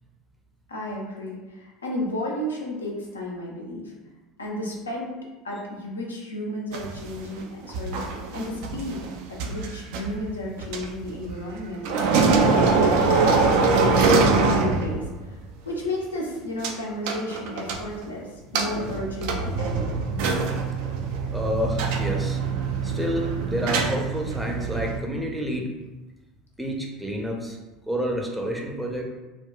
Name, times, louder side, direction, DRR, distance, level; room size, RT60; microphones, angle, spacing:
voice 1, 0.7-3.9 4.4-5.2 5.4-8.0 8.3-15.0 15.7-18.3 18.5-19.9, left 1 dB, 80° left, -2 dB, 0.6 m, -32 dB
sound 1, 6.7-11.6 11.8-15.2 15.5-15.6 16.6-16.7 17.1-18.1 18.5-25.0, right 4 dB, 60° right, 0.3 m, -23 dB
voice 2, 21.3-22.4 22.8-25.7 26.6-27.6 27.9-29.0, equal, 5° right, 0 dB, 0.6 m, -29 dB
3.7 x 2.2 x 2.2 m, 1.1 s
figure-of-eight pair, 70°, 0 cm